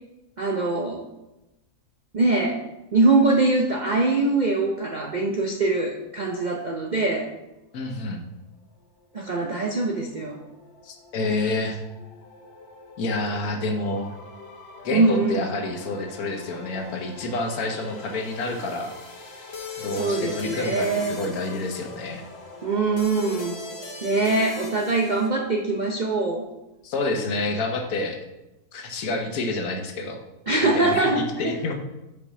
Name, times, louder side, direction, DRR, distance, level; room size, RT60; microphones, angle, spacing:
voice 1, 0.4-1.0 2.1-2.6 2.9-7.3 9.1-10.4 14.9-15.4 19.9-21.2 22.6-23.6 24.0-26.5 30.5-31.6, right 3 dB, 60° right, 0 dB, 0.4 m, -23 dB
voice 2, 7.7-8.2 10.8-11.8 13.0-14.1 14.8-18.9 19.8-22.2 26.8-28.2 28.7-30.2 30.5-31.7, left 2 dB, 70° left, 4 dB, 1.4 m, -28 dB
sound 1, 9.0-25.3, left 3 dB, 45° left, 1.1 m, -41 dB
5.4 x 4.9 x 5.8 m, 0.97 s
omnidirectional pair, 1.6 m